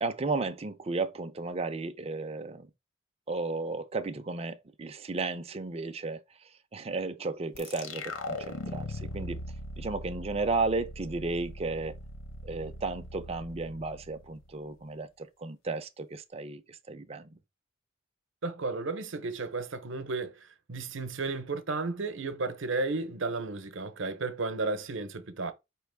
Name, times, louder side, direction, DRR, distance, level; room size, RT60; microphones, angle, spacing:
voice 1, 0.0-2.7 3.3-6.2 6.7-9.4 9.8-11.9 12.4-17.4, right 3 dB, 30° right, 0.5 m, -34 dB
sound 1, 7.5-14.8, left 1 dB, 75° left, 0.8 m, -40 dB
voice 2, 18.4-20.3 20.7-25.5, right 3 dB, 65° right, 0.8 m, -33 dB
4.5 x 3.0 x 3.4 m
head